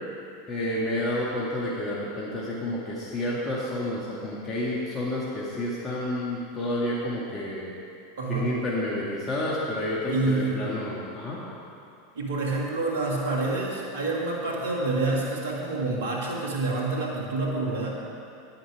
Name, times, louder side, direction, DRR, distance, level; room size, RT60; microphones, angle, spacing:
voice 1, 0.5-7.7 8.3-11.4, left 1 dB, 30° left, -6 dB, 1.9 m, -30 dB
voice 2, 8.2-8.5 10.1-10.9 12.2-17.9, right 2 dB, 75° right, -2 dB, 1.8 m, -28 dB
10.5 x 9.5 x 4.8 m, 2.7 s
hypercardioid pair, 90°, 0 cm